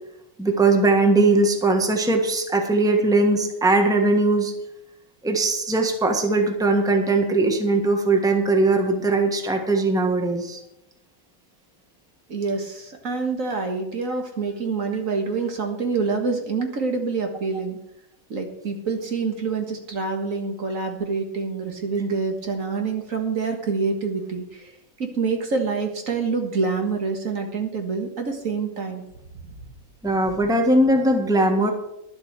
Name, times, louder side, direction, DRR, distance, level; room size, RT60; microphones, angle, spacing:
voice 1, 0.4-4.5 5.2-10.6 30.0-31.7, right 2 dB, 5° right, 3 dB, 1.3 m, -20 dB
voice 2, 12.3-17.8 18.3-24.7 25.0-29.0, right 4 dB, 65° right, 3 dB, 2.0 m, -26 dB
11.5 x 8.0 x 6.6 m, 0.84 s
omnidirectional pair, 1.5 m